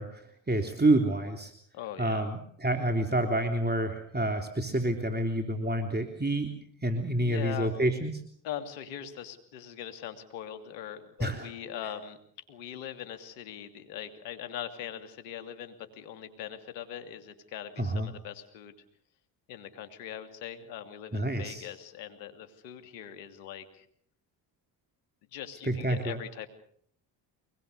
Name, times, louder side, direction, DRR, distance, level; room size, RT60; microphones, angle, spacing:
voice 1, 0.0-1.5 2.0-6.5 6.8-8.2 11.2-11.5 17.8-18.1 21.1-21.7 25.6-26.2, right 1 dB, 20° right, 5 dB, 3.5 m, -28 dB
voice 2, 1.7-2.2 7.2-7.7 8.4-12.2 12.5-18.7 19.5-23.9 25.3-26.5, left 10 dB, 85° left, 7 dB, 3.0 m, -41 dB
24.0 x 21.5 x 6.8 m, 0.63 s
hypercardioid pair, 55°, 48 cm